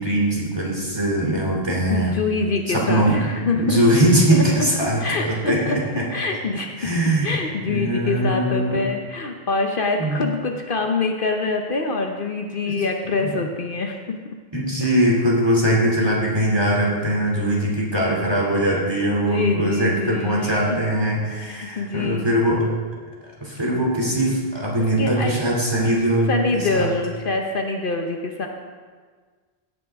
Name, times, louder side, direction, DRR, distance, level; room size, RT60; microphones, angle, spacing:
voice 1, 0.0-2.1 2.7-3.2 3.5-6.0 6.8-7.3 7.7-8.8 10.0-10.2 12.7-12.8 13.2-13.3 14.5-22.6 23.4-26.9, right 1 dB, 25° right, -4 dB, 2.7 m, -21 dB
voice 2, 1.9-3.8 4.3-4.7 5.0-5.8 6.1-6.9 7.2-14.2 18.3-18.4 19.1-20.8 21.4-22.2 25.0-25.3 26.3-28.5, left 3 dB, 60° left, 3 dB, 1.0 m, -25 dB
16.5 x 9.4 x 3.6 m, 1.5 s
omnidirectional pair, 1.1 m